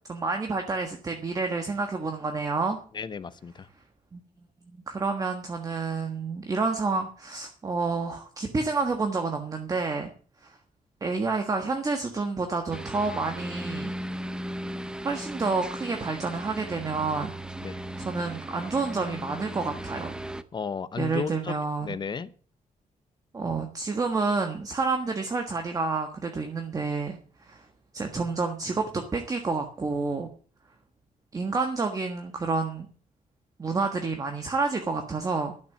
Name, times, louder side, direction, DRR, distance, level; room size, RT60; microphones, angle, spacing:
voice 1, 0.1-2.8 4.1-4.2 4.7-10.1 10.4-10.6 11.0-13.9 15.0-17.3 17.6-20.1 21.0-22.0 23.3-27.7 27.9-30.3 31.3-32.8 33.6-35.5, right 4 dB, 25° right, 5 dB, 1.5 m, -29 dB
voice 2, 2.9-3.7 17.6-17.8 20.5-21.5 21.8-22.3, left 6 dB, 30° left, 14 dB, 0.8 m, -33 dB
sound 1, 12.7-20.4, right 1 dB, 5° right, 0.6 m, -37 dB
12.5 x 7.4 x 9.0 m, 0.42 s
wide cardioid pair, 175°, 14 cm